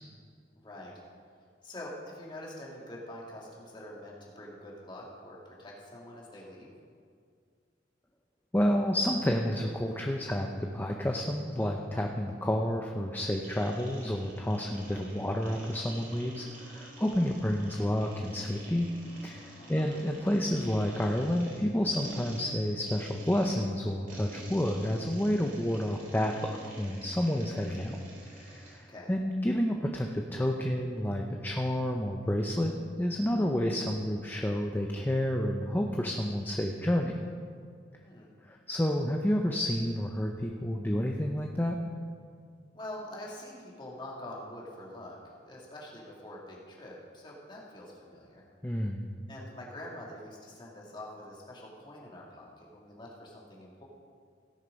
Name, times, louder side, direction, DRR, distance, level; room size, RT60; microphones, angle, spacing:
voice 1, 0.5-1.0 1.6-6.7 19.6-20.0 28.9-29.2 38.0-38.3 42.7-45.2 45.5-48.4 49.3-53.8, left 1 dB, 25° left, -4 dB, 2.4 m, -45 dB
voice 2, 8.5-18.9 19.2-28.0 28.4-32.7 33.0-37.2 38.5-41.8 48.6-49.0, left 1 dB, 10° left, 2 dB, 0.6 m, -30 dB
sound 1, 13.4-28.8, right 1 dB, 45° right, 3.3 m, -49 dB
17.0 x 6.7 x 5.2 m, 2.1 s
head